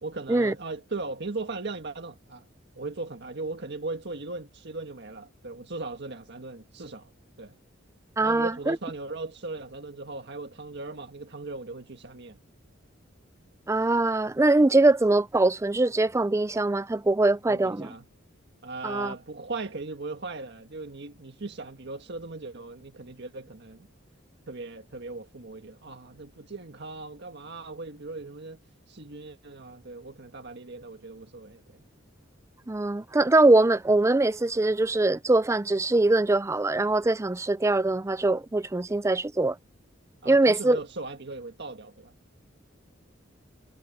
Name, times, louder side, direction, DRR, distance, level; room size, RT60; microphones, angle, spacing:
voice 1, 0.0-2.5 2.8-7.1 7.4-7.6 8.2-12.4 17.5-18.1 18.6-23.9 24.5-28.6 28.9-31.8 40.2-42.1, right 3 dB, 60° right, 1.6 m, -38 dB
voice 2, 8.2-8.8 13.7-17.9 18.8-19.1 32.7-39.6 40.3-40.8, right 2 dB, 15° right, 0.4 m, -22 dB
head